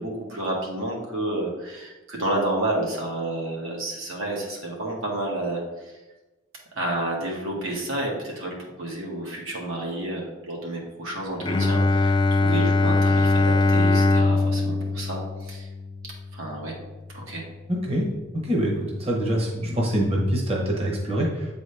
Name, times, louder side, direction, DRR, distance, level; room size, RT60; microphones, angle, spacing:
voice 1, 0.0-5.6 5.8-5.9 6.7-15.7 16.3-16.7 17.1-17.4, right 1 dB, 85° right, -2 dB, 1.7 m, -30 dB
Bowed string instrument, 11.4-17.1, left 2 dB, 25° left, 0.4 m, -22 dB
voice 2, 17.7-18.1 18.4-21.5, equal, 30° right, -2 dB, 0.9 m, -25 dB
8.0 x 4.0 x 3.3 m, 1.1 s
head